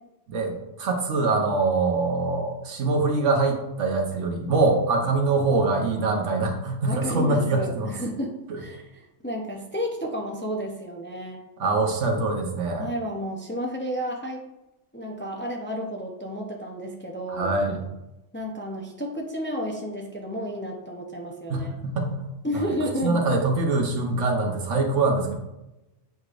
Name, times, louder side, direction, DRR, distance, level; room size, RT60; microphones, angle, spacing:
voice 1, 0.3-7.9 11.6-12.9 17.3-17.8 21.5-22.2 22.5-22.7 23.0-25.3, right 3 dB, 85° right, 2 dB, 1.3 m, -24 dB
voice 2, 6.9-11.4 12.8-14.4 14.9-17.5 18.3-21.7 22.4-23.2, equal, 15° left, 0 dB, 0.5 m, -31 dB
7.8 x 4.9 x 2.5 m, 0.97 s
omnidirectional pair, 1.2 m